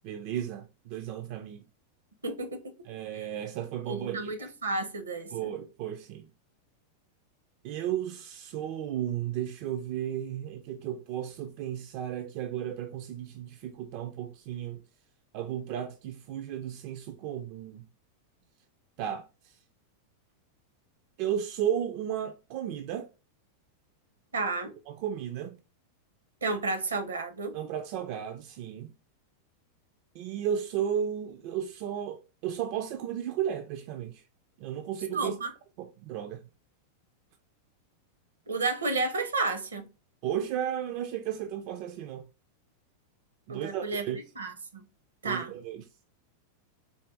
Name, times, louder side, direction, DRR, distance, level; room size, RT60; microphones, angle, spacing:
voice 1, 0.0-1.6 2.9-4.5 5.3-6.3 7.6-14.8 15.3-17.9 19.0-19.6 21.2-23.1 24.9-25.6 27.5-28.9 30.1-34.2 34.6-35.4 35.8-36.5 40.2-42.3 43.5-44.2 45.2-45.8, right 10 dB, 45° right, 0.4 m, -34 dB
voice 2, 2.2-2.7 3.9-5.5 24.3-24.7 26.4-27.6 35.1-35.5 38.5-39.9 43.5-44.1 44.4-44.9 45.2-45.5, right 3 dB, 70° right, 0.7 m, -31 dB
4.1 x 2.7 x 3.3 m
figure-of-eight pair, 90°, 0 cm